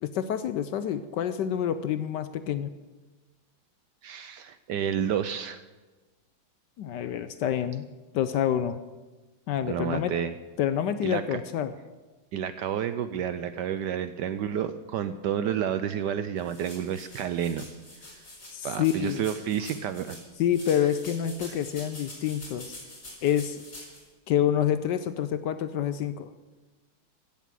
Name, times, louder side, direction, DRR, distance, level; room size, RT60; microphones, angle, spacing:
voice 1, 0.0-2.7 6.8-7.8 8.1-8.8 9.5-10.1 10.6-11.7 18.5-19.2 20.4-22.8 23.2-23.6 24.3-26.3, left 10 dB, 70° left, 12 dB, 1.1 m, -27 dB
voice 2, 4.0-5.6 9.6-10.3 11.0-11.4 12.3-17.7 18.6-20.2 21.4-21.5, right 9 dB, 75° right, 11 dB, 1.0 m, -30 dB
sound 1, 16.4-20.2 20.5-24.0, left 1 dB, 40° left, 4.8 m, -45 dB
16.0 x 7.2 x 7.5 m, 1.2 s
omnidirectional pair, 2.3 m